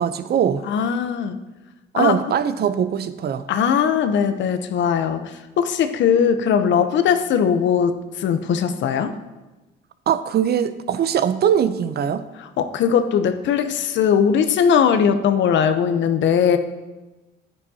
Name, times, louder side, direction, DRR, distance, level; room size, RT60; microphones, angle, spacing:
voice 1, 0.0-0.6 1.9-3.5 10.1-12.2, right 8 dB, 55° right, 12 dB, 0.6 m, -21 dB
voice 2, 0.7-1.4 1.9-2.2 3.5-5.2 5.6-9.1 12.4-16.6, left 7 dB, 70° left, 9 dB, 0.8 m, -19 dB
10.0 x 9.6 x 2.8 m, 1.1 s
cardioid pair, 80°, 20 cm